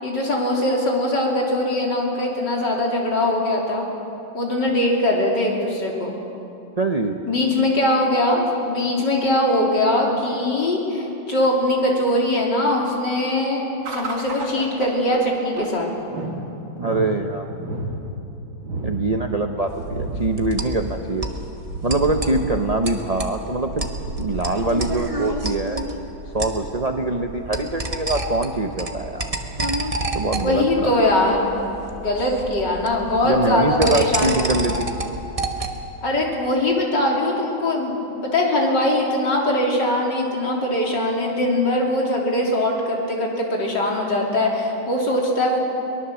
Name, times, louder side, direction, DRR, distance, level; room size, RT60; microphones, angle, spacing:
voice 1, 0.0-3.9 4.3-6.1 7.3-15.9 30.4-31.6 32.0-34.4 36.0-45.6, left 1 dB, 55° left, -2 dB, 3.8 m, -21 dB
voice 2, 6.8-7.2 16.8-17.5 18.8-21.3 21.8-23.9 24.2-25.8 26.3-29.3 30.1-31.0 33.2-34.9, right 2 dB, 45° right, 3 dB, 0.5 m, -23 dB
sound 1, 13.8-26.5, right 2 dB, 65° right, 2.9 m, -32 dB
sound 2, 19.7-35.9, right 1 dB, 20° right, 1.0 m, -30 dB
23.0 x 19.5 x 7.1 m, 2.9 s
omnidirectional pair, 2.3 m